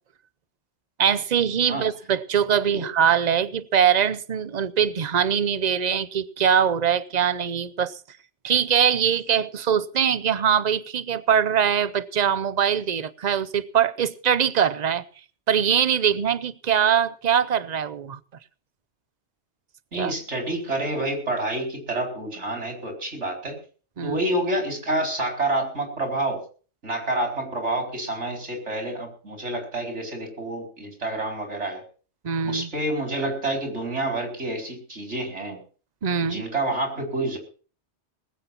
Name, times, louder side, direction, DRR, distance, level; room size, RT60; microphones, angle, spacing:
voice 1, 1.0-7.9 8.4-15.1 15.5-18.2 20.0-20.1 24.0-24.2 32.2-32.7 36.0-36.4, right 8 dB, 40° right, 0.8 m, -22 dB
voice 2, 19.9-23.6 24.0-26.4 26.8-31.8 32.4-35.6 36.2-37.4, right 1 dB, 85° right, 4.9 m, -28 dB
20.0 x 8.6 x 5.7 m
omnidirectional pair, 1.2 m